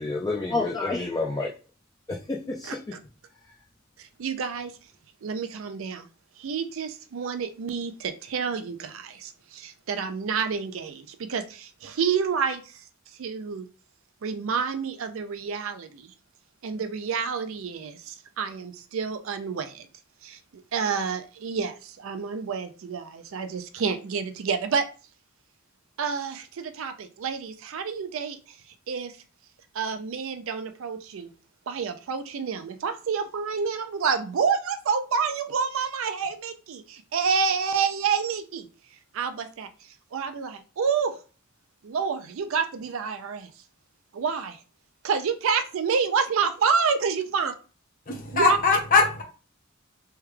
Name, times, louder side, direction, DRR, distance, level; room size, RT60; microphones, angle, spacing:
voice 1, 0.0-1.5 2.1-2.8, left 3 dB, 15° left, -1 dB, 0.3 m, -28 dB
voice 2, 4.0-4.7 5.2-6.1 6.4-12.8 13.2-13.7 14.2-16.1 16.6-19.9 20.2-20.4 20.7-24.9 26.0-28.6 28.9-29.1 29.7-31.3 31.7-38.7 39.1-39.7 40.1-41.2 41.8-43.5 44.1-44.6 45.0-47.5 48.3-48.6, right 6 dB, 65° right, 8 dB, 0.4 m, -28 dB
voice 3, 48.1-49.2, left 4 dB, 40° left, 2 dB, 0.9 m, -21 dB
3.3 x 2.2 x 3.2 m, 0.37 s
head